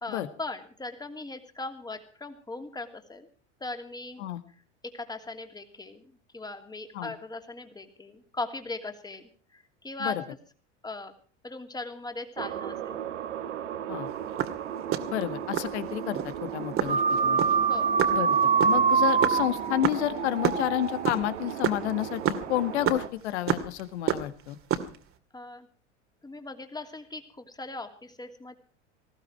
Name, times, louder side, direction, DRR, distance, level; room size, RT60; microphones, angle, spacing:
voice 1, 0.0-3.3 3.6-4.2 4.8-6.0 6.3-10.4 10.8-11.1 11.4-13.0 17.7-17.9 25.3-25.7 26.2-28.6, left 2 dB, 10° left, 7 dB, 2.7 m, -39 dB
sound 1, 12.4-23.1, right 9 dB, 80° right, 1.5 m, -36 dB
sound 2, 14.2-15.7 16.2-16.4 16.8-20.6 20.9-23.8 24.1-25.0, right 9 dB, 40° right, 2.3 m, -28 dB
voice 2, 15.1-17.4 18.1-18.4 18.6-24.6, left 14 dB, 70° left, 12 dB, 1.8 m, -30 dB
sound 3, 16.9-21.4, right 5 dB, 20° right, 2.4 m, -25 dB
19.5 x 15.0 x 4.6 m, 0.43 s
hypercardioid pair, 85°, 35 cm